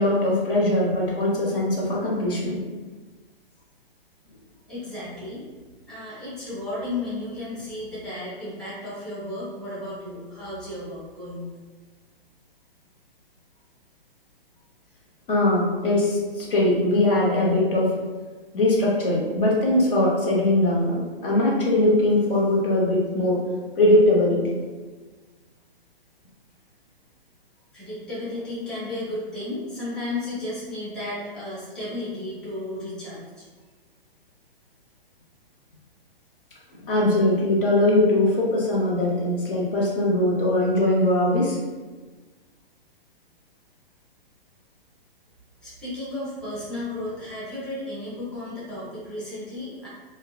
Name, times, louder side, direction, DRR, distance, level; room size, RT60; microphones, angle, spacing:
voice 1, 0.0-2.6 15.3-17.9 18.5-23.4 23.7-24.4 36.9-41.6, left 1 dB, 60° left, -4 dB, 1.0 m, -21 dB
voice 2, 4.7-5.4 5.9-11.5 27.7-33.4 45.6-49.9, left 2 dB, ahead, -11 dB, 0.8 m, -33 dB
3.6 x 2.2 x 2.4 m, 1.3 s
hypercardioid pair, 130°, 30 cm